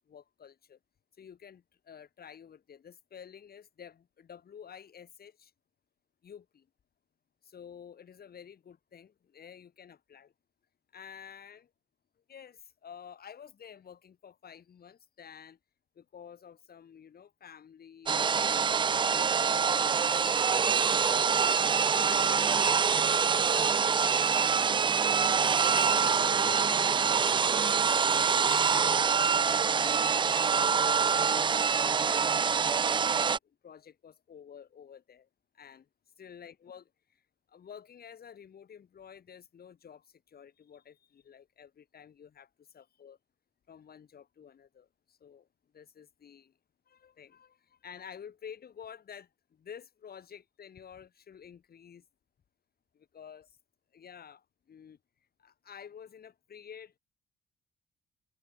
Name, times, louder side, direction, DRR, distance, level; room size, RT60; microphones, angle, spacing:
voice 1, 0.1-0.8 1.2-5.5 6.2-6.7 7.4-10.3 10.9-11.7 12.3-15.6 15.9-22.5 23.0-25.3 25.9-27.3 27.5-32.3 32.8-35.3 35.5-35.9 36.2-37.2 37.5-43.2 43.7-45.5 45.7-46.6 46.9-52.0 52.9-53.6 53.9-55.0 55.4-57.0, left 8 dB, 50° left, 3.0 m, -51 dB
sound 1, 18.1-33.4, right 6 dB, 25° right, 0.3 m, -25 dB
cardioid pair, 90°, 20 cm